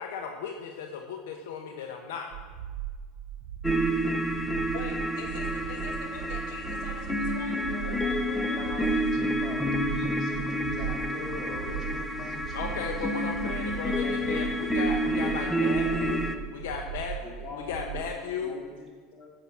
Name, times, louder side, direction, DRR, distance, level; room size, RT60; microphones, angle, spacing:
voice 1, 0.0-2.3 12.5-16.2 16.5-17.1 17.5-18.6, left 6 dB, 85° left, 3 dB, 1.1 m, -35 dB
sound 1, 2.3-18.1, right 11 dB, 70° right, 0.9 m, -38 dB
sound 2, 3.6-16.4, equal, 5° left, 0.8 m, -29 dB
voice 2, 4.7-8.6 8.9-9.0, left 5 dB, 65° left, 2 dB, 2.2 m, -44 dB
voice 3, 7.8-13.0 13.5-14.5 15.5-16.4 17.2-19.3, left 3 dB, 30° left, -1 dB, 2.9 m, -43 dB
10.5 x 7.2 x 7.3 m, 1.6 s
supercardioid pair, 140°, 0 cm